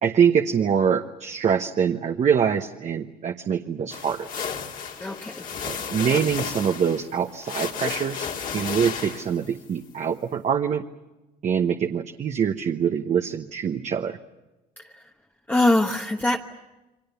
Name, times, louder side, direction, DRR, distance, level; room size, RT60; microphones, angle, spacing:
voice 1, 0.0-4.3 5.6-10.8 11.4-14.2, right 7 dB, 45° right, 5 dB, 1.0 m, -24 dB
sound 1, 3.9-9.5, left 6 dB, 55° left, 2.5 m, -33 dB
voice 2, 5.0-5.5 15.5-16.4, left 2 dB, 10° left, 1 dB, 1.2 m, -22 dB
29.0 x 23.5 x 7.0 m, 1.0 s
cardioid pair, 110°, 17 cm